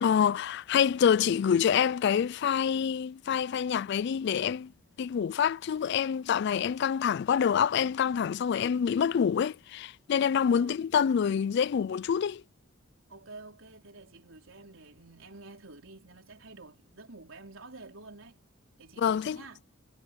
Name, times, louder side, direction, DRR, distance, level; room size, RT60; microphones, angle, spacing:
voice 1, 0.0-4.7 5.0-12.4 19.0-19.4, left 7 dB, 55° left, 0.3 m, -26 dB
voice 2, 10.4-10.8 13.1-18.4 18.8-19.6, right 3 dB, 75° right, 3.8 m, -49 dB
head